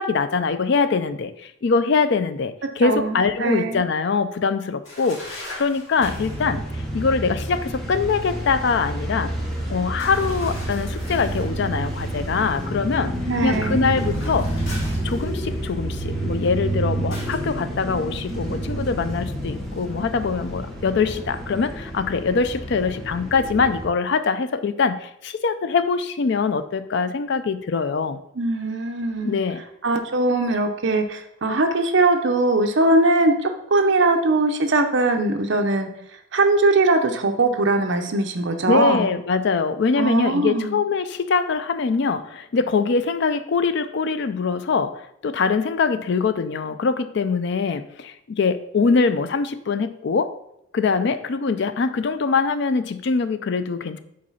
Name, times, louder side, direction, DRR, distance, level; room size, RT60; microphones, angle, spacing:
voice 1, 0.0-6.6 6.9-9.3 9.7-13.1 13.4-14.5 15.0-28.2 29.2-29.6 38.7-50.3 50.7-54.0, left 4 dB, 55° left, 11 dB, 0.4 m, -23 dB
voice 2, 2.8-3.9 13.3-13.9 28.4-29.4 29.8-35.9 36.3-39.1 40.0-40.8, right 2 dB, 60° right, 5 dB, 0.7 m, -21 dB
sound 1, 4.8-6.5 10.0-11.5 13.9-15.6 17.1-17.5, left 1 dB, 75° left, 2.3 m, -39 dB
sound 2, 6.0-23.9, right 1 dB, ahead, 1.2 m, -29 dB
5.2 x 4.0 x 5.6 m, 0.77 s
head